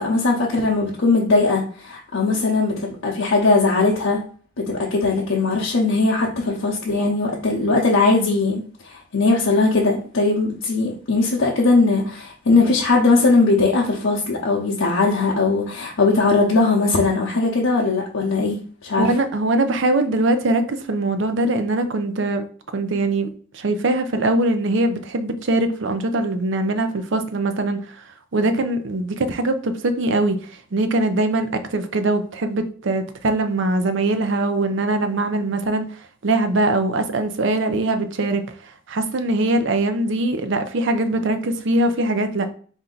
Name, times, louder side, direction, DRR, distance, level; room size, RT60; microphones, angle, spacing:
voice 1, 0.0-4.2 4.6-19.1, left 3 dB, 85° left, 0.7 m, -19 dB
voice 2, 19.0-22.4 22.7-28.0 28.3-42.5, right 2 dB, 65° right, 0.6 m, -22 dB
4.4 x 2.7 x 3.8 m
head